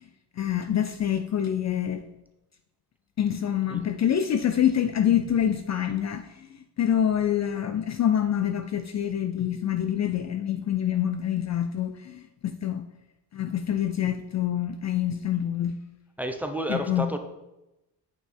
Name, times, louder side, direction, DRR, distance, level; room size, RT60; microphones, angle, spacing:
voice 1, 0.4-2.0 3.2-6.5 6.8-12.9 13.3-15.8 16.7-17.1, left 10 dB, 40° left, 9 dB, 0.4 m, -26 dB
voice 2, 16.2-17.2, equal, 5° right, 5 dB, 0.6 m, -30 dB
8.8 x 5.7 x 4.3 m, 0.97 s
cardioid pair, 130°, 42 cm